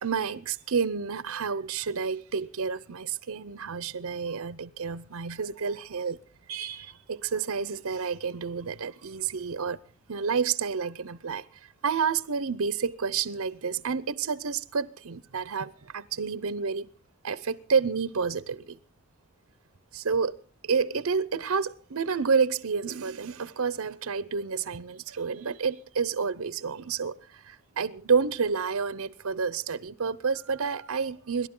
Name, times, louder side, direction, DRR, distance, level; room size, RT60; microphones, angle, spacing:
voice 1, 0.0-6.2 6.5-9.8 10.1-11.4 11.8-16.9 17.2-18.8 19.9-20.4 20.6-31.5, right 5 dB, 90° right, 0.7 m, -29 dB
27.0 x 12.0 x 3.8 m
head